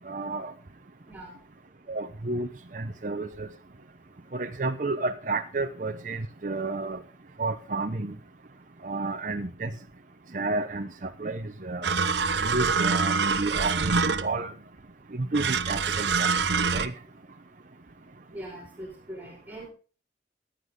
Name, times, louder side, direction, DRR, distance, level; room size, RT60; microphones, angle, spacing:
voice 1, 0.0-0.5 1.9-3.5 4.3-7.0 7.4-8.2 8.8-9.7 10.3-12.0 12.4-14.0 14.2-14.5 15.1-16.3 16.7-16.9, right 3 dB, 45° right, 5 dB, 0.8 m, -31 dB
voice 2, 1.1-1.4 18.3-19.7, right 1 dB, 10° right, -5 dB, 5.2 m, -41 dB
sound 1, 11.8-14.5 15.3-16.9, right 5 dB, 75° right, 1.0 m, -25 dB
14.5 x 10.0 x 3.8 m, 0.37 s
head